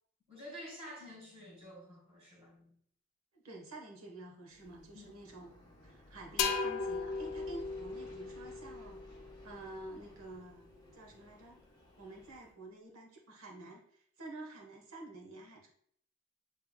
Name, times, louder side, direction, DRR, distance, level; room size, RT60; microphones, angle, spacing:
voice 1, 0.3-2.7 4.9-5.2, equal, 25° right, 1.7 m, -50 dB
voice 2, 3.3-5.6 5.8-9.0 9.4-11.6 12.0-15.7, right 2 dB, 85° right, 1.2 m, -49 dB
Aircraft, 4.5-12.5, left 1 dB, 20° left, 0.9 m, -57 dB
sound 1, 6.4-10.0, left 5 dB, 70° left, 0.4 m, -37 dB
6.6 x 3.4 x 2.2 m
head